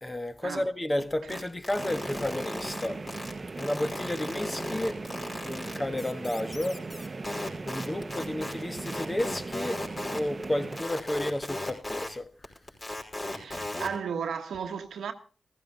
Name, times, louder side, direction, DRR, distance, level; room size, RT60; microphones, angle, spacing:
voice 1, 0.0-3.0 3.6-5.0 5.4-6.8 7.6-9.8 10.1-12.3, left 1 dB, 25° left, 1.5 m, -32 dB
sound 1, 1.3-3.3 3.6-12.1 12.4-13.9, left 2 dB, 45° left, 5.1 m, -36 dB
sound 2, 1.8-10.8, right 3 dB, 45° right, 0.9 m, -39 dB
voice 2, 13.3-15.1, right 6 dB, 85° right, 1.3 m, -35 dB
15.0 x 15.0 x 4.0 m
supercardioid pair, 45°, 0 cm